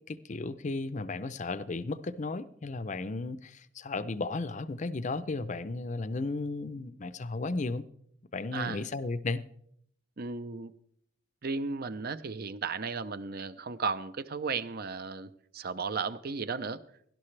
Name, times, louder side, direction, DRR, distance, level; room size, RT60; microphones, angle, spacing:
voice 1, 0.0-7.9 8.3-9.4, left 3 dB, 40° left, 0.5 m, -34 dB
voice 2, 8.5-8.9 10.2-10.7 11.4-16.8, right 4 dB, 50° right, 0.6 m, -35 dB
17.5 x 11.5 x 3.3 m
head